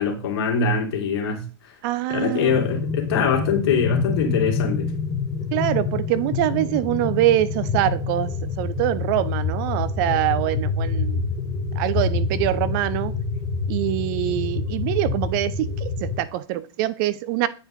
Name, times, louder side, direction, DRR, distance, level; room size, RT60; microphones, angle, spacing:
voice 1, 0.0-1.7 2.1-4.9, left 5 dB, 65° left, 2.7 m, -23 dB
voice 2, 1.8-2.7 5.5-11.2 11.7-13.1 13.7-17.5, right 14 dB, 50° right, 0.6 m, -24 dB
sound 1, 2.5-16.2, left 4 dB, 25° left, 1.0 m, -26 dB
9.3 x 5.1 x 3.8 m
hypercardioid pair, 115°, 13 cm